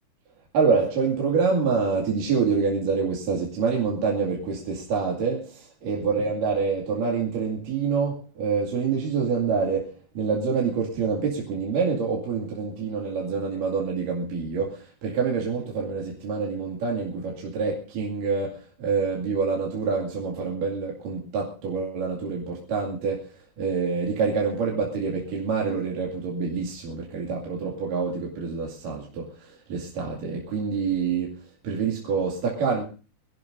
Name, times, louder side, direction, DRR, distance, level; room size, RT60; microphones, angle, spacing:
voice 1, 0.5-32.8, right 5 dB, 70° right, 4.0 m, -26 dB
25.0 x 16.5 x 2.7 m
omnidirectional pair, 4.1 m